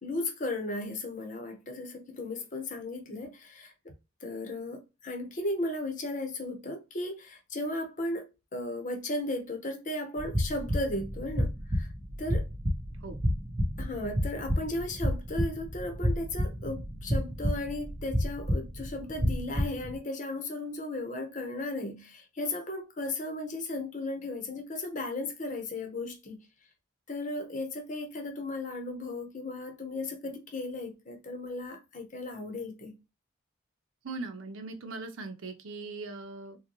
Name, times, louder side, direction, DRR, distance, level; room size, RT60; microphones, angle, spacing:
voice 1, 0.0-3.9 4.2-11.9 12.2-12.5 13.8-26.4 27.1-32.9, left 2 dB, 40° left, 0.8 m, -35 dB
sound 1, 10.2-20.0, equal, 25° right, 0.9 m, -31 dB
voice 2, 34.0-36.6, right 3 dB, 90° right, 0.7 m, -40 dB
3.8 x 2.2 x 2.9 m
head